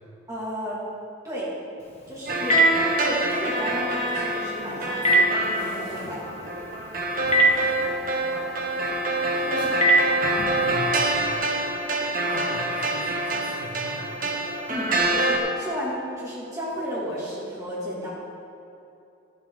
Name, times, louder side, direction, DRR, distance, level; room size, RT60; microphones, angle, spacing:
voice 1, 0.3-0.8 1.2-1.5 2.1-2.6 3.0-6.2 9.4-9.8 14.7-18.1, equal, 15° right, -8 dB, 2.5 m, -33 dB
Telephone, 1.8-10.7, right 1 dB, 30° left, 1.1 m, -26 dB
sound 1, 2.3-15.4, right 2 dB, 45° right, 1.2 m, -26 dB
sound 2, 5.4-11.6, left 1 dB, 60° left, 2.0 m, -46 dB
voice 2, 10.5-11.1 12.3-14.0, equal, 65° right, -5 dB, 2.0 m, -38 dB
12.0 x 8.5 x 4.0 m, 2.8 s
head